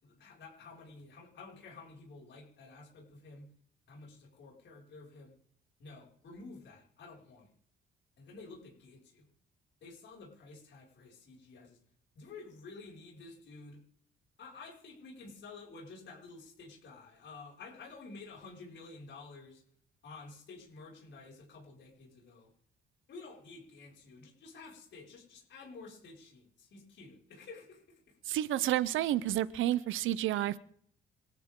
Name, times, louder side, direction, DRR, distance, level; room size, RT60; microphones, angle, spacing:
voice 1, 0.0-3.5 3.9-5.4 5.8-7.5 8.2-9.3 9.8-11.8 12.2-13.8 14.4-19.6 20.0-22.5 23.1-28.2, left 3 dB, 65° left, -3 dB, 5.8 m, -51 dB
voice 2, 28.3-30.6, right 13 dB, 80° right, 16 dB, 0.7 m, -30 dB
27.0 x 11.0 x 3.8 m, 0.64 s
cardioid pair, 90°, 20 cm